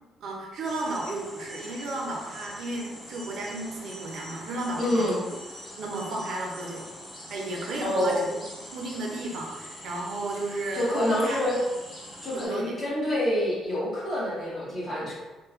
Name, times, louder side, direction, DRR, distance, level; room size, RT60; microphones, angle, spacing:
voice 1, 0.2-5.3 5.8-6.9 7.3-8.4 8.7-11.4 12.3-12.7, right 2 dB, 65° right, -1 dB, 0.5 m, -33 dB
sound 1, 0.6-12.5, equal, 20° left, 0.9 m, -44 dB
voice 2, 4.8-5.2 7.8-8.3 10.7-11.6 12.2-15.1, left 1 dB, 35° left, -8 dB, 1.2 m, -27 dB
3.1 x 2.1 x 2.4 m, 1.2 s
cardioid pair, 125°, 0 cm